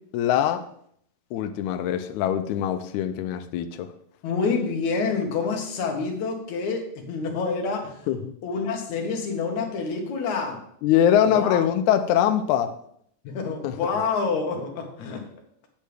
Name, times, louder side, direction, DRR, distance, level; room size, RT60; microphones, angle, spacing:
voice 1, 0.1-0.6 1.3-3.9 8.1-8.3 10.8-12.7 13.6-13.8, left 10 dB, 85° left, 8 dB, 1.7 m, -22 dB
voice 2, 4.2-8.1 8.4-10.7 11.3-11.6 13.2-15.2, left 4 dB, 65° left, 2 dB, 2.4 m, -27 dB
8.4 x 8.3 x 3.4 m, 0.68 s
omnidirectional pair, 4.0 m